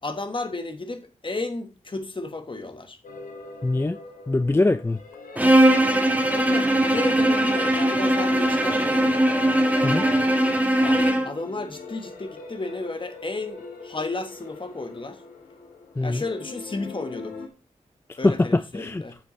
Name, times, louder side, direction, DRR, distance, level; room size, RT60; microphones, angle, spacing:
voice 1, 0.0-3.0 6.3-9.4 10.8-15.2 16.0-17.4 18.2-19.2, left 2 dB, 40° left, 1.3 m, -33 dB
sound 1, 3.0-17.5, left 4 dB, 90° left, 1.3 m, -42 dB
voice 2, 3.6-4.0 4.3-5.0 9.8-10.1 16.0-16.2 18.1-19.0, left 2 dB, 15° left, 0.4 m, -22 dB
Bowed string instrument, 5.4-11.4, right 1 dB, 10° right, 1.2 m, -20 dB
8.0 x 7.4 x 3.1 m
cardioid pair, 60°, 14 cm